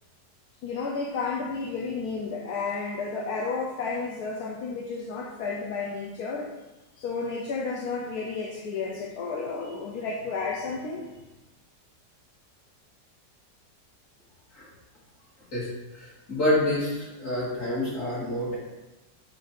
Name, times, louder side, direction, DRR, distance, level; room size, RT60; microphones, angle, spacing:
voice 1, 0.6-6.5 7.0-11.1, left 4 dB, 65° left, -2 dB, 1.2 m, -32 dB
voice 2, 15.9-18.6, left 1 dB, 45° left, -8 dB, 2.6 m, -27 dB
8.2 x 2.7 x 5.9 m, 1.1 s
omnidirectional pair, 1.9 m